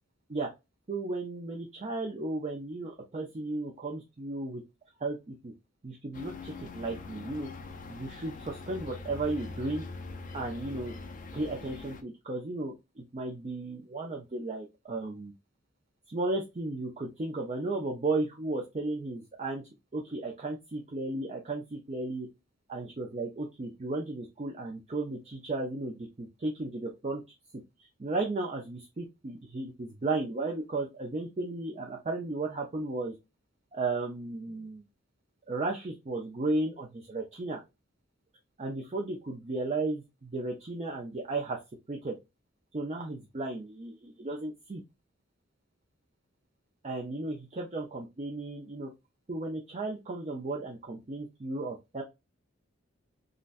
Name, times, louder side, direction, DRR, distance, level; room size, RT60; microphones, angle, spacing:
voice 1, 0.9-4.6 5.0-5.5 5.8-7.5 7.9-9.9 10.3-10.9 11.3-15.3 16.1-19.6 19.9-22.3 22.7-27.2 27.8-33.1 33.7-34.8 35.5-37.6 38.6-41.6 41.9-42.1 42.7-44.8 46.8-48.9 49.3-52.0, right 2 dB, 35° right, 0 dB, 0.5 m, -34 dB
sound 1, 6.1-12.0, left 3 dB, 40° left, 0.4 m, -43 dB
3.8 x 2.1 x 2.4 m, 0.23 s
head